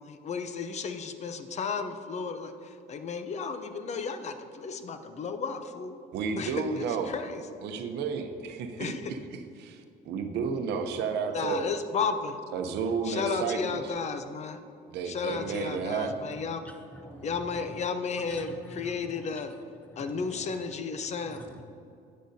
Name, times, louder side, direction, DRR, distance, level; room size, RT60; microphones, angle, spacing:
voice 1, 0.0-6.0 6.4-7.4 8.8-9.1 11.3-12.4 13.1-14.6 15.1-16.6 17.2-19.5 20.0-21.4, left 5 dB, 40° left, 8 dB, 0.6 m, -33 dB
voice 2, 6.1-7.1 7.6-11.7 12.5-13.9 14.9-16.3, right 5 dB, 80° right, 6 dB, 0.8 m, -32 dB
voice 3, 15.3-15.7 16.6-17.7 18.3-19.3 20.1-20.6 20.9-21.6, equal, 10° left, 4 dB, 0.8 m, -47 dB
10.5 x 8.4 x 2.7 m, 2.5 s
cardioid pair, 110°, 17 cm